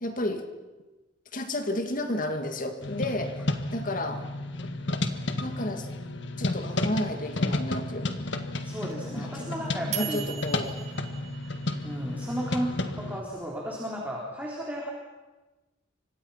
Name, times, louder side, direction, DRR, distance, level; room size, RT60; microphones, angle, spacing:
voice 1, 0.0-0.5 1.3-4.2 5.4-5.9 6.4-8.3 9.1-10.7, left 1 dB, 40° left, 6 dB, 2.1 m, -32 dB
sound 1, 2.8-13.2, left 2 dB, 60° left, 1.7 m, -32 dB
voice 2, 8.6-10.2 11.8-14.9, equal, 10° right, -4 dB, 3.9 m, -34 dB
sound 2, 8.9-12.1, right 11 dB, 35° right, 2.4 m, -38 dB
30.0 x 25.5 x 5.8 m, 1.2 s
head